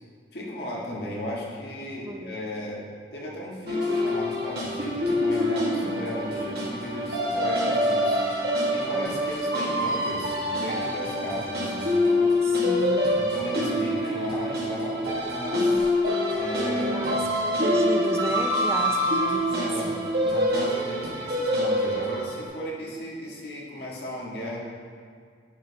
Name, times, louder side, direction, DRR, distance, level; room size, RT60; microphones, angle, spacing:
voice 1, 0.3-2.8 3.1-12.3 13.2-15.8 16.4-17.2 19.5-20.0 20.2-24.6, equal, 65° left, -4 dB, 1.6 m, -35 dB
voice 2, 2.0-2.3 9.0-9.3 11.7-13.1 16.7-20.0, right 1 dB, 15° right, 2 dB, 0.5 m, -35 dB
sound 1, 3.7-22.4, left 1 dB, 60° right, 1.5 m, -25 dB
10.0 x 6.1 x 2.9 m, 2.1 s
head